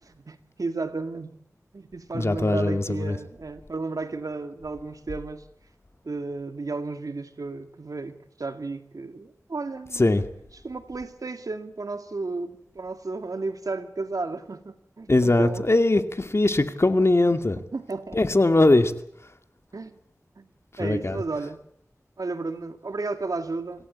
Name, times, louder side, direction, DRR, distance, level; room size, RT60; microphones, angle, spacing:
voice 1, 0.0-1.4 1.7-5.5 6.0-10.1 10.6-15.6 15.9-16.0 17.0-17.1 17.7-18.2 19.7-20.0 20.4-20.5 20.8-21.6 22.2-23.9, right 3 dB, 80° right, 2.1 m, -33 dB
voice 2, 2.1-3.2 10.0-10.2 15.1-17.6 18.1-18.9 20.8-21.2, left 2 dB, 50° left, 2.3 m, -21 dB
26.5 x 17.0 x 8.5 m
wide cardioid pair, 45°, 6 cm